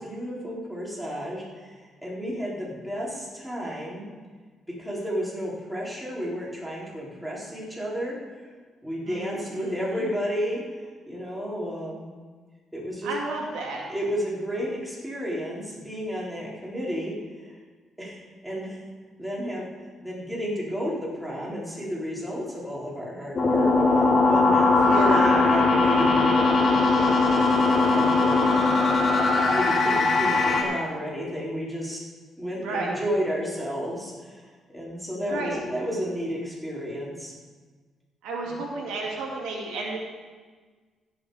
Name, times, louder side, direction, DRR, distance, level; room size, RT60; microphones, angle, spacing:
voice 1, 0.0-4.0 4.8-8.2 8.8-10.6 11.1-12.1 12.7-13.1 13.9-17.2 17.4-17.6 18.0-18.8 19.2-19.7 20.0-26.5 27.7-28.5 29.4-32.0 32.4-37.3 38.5-38.6, equal, 5° right, -5 dB, 4.1 m, -32 dB
voice 2, 9.0-10.1 13.0-13.8 24.7-25.5 32.5-32.9 35.1-35.6 38.2-40.0, right 3 dB, 90° right, -1 dB, 2.2 m, -32 dB
sound 1, 23.4-30.6, left 3 dB, 45° left, 2.8 m, -20 dB
16.5 x 7.2 x 4.9 m, 1.4 s
cardioid pair, 90°, 0 cm